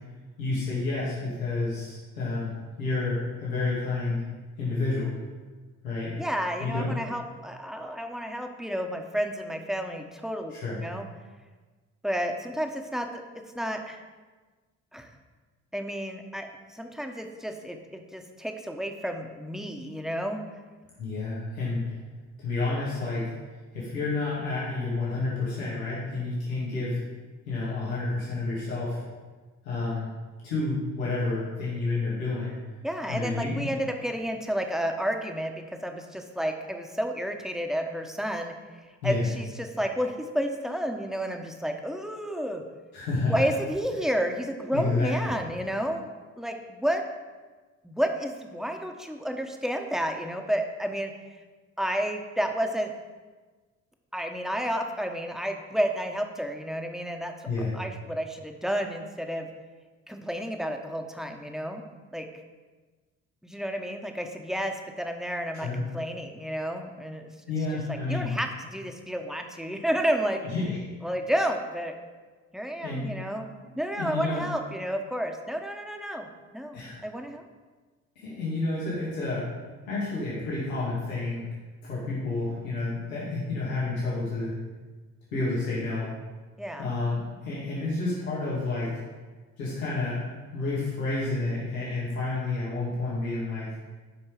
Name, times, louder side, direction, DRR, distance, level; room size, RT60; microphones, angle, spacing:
voice 1, 0.4-2.5 2.8-4.2 4.6-5.1 5.8-6.1 6.6-6.9 10.5-10.8 21.0-21.9 22.4-23.3 23.7-27.0 27.5-29.1 29.6-30.1 30.4-32.5 33.1-33.7 39.0-39.3 42.9-43.4 44.7-45.4 57.5-57.8 65.5-65.8 67.5-68.3 70.5-70.8 72.8-73.1 73.9-74.4 76.7-77.0 78.2-79.4 79.8-81.5 81.8-84.6 85.3-86.1 86.8-88.9 89.6-90.2 90.5-93.7, left 3 dB, 90° left, -8 dB, 2.4 m, -30 dB
voice 2, 6.2-10.5 10.8-11.1 12.0-13.2 13.5-14.0 14.9-15.1 15.7-20.4 32.8-38.6 39.0-42.6 43.3-46.1 46.4-47.0 47.8-51.1 51.8-52.9 54.1-57.3 57.7-59.5 60.1-61.8 62.1-62.3 63.4-67.3 67.9-70.4 71.0-71.9 72.5-73.5 73.8-77.4 86.6-86.9, equal, ahead, 3 dB, 1.3 m, -31 dB
12.0 x 5.2 x 5.0 m, 1.3 s
hypercardioid pair, 50°, 40 cm